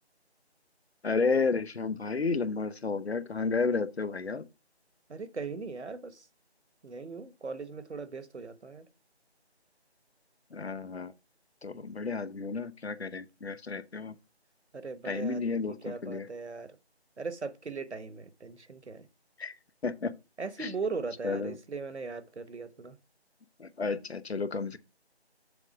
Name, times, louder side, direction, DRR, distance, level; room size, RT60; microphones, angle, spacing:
voice 1, 1.0-4.5 10.5-11.1 11.6-14.2 15.0-16.3 19.4-19.6 19.8-20.1 20.6-20.7 21.2-21.5 23.6-24.8, left 4 dB, 70° left, 0.8 m, -31 dB
voice 2, 5.1-6.3 6.8-8.9 14.7-16.8 17.2-19.1 20.4-23.0, right 4 dB, 85° right, 1.1 m, -39 dB
7.1 x 3.8 x 6.0 m
figure-of-eight pair, 180°, 33 cm